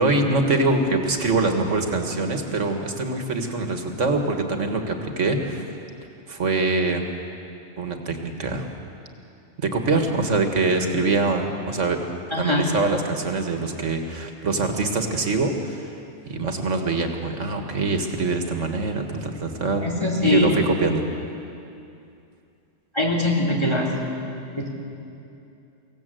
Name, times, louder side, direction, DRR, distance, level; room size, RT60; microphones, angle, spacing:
voice 1, 0.0-5.7 6.3-7.0 7.8-8.7 9.6-12.0 12.4-16.0 16.3-19.9 20.2-21.1, right 3 dB, 80° right, 4 dB, 2.0 m, -24 dB
voice 2, 12.3-12.6 19.8-20.5 22.9-23.9 24.6-24.7, left 1 dB, 20° left, -1 dB, 3.7 m, -22 dB
25.0 x 17.0 x 7.7 m, 2.7 s
omnidirectional pair, 1.2 m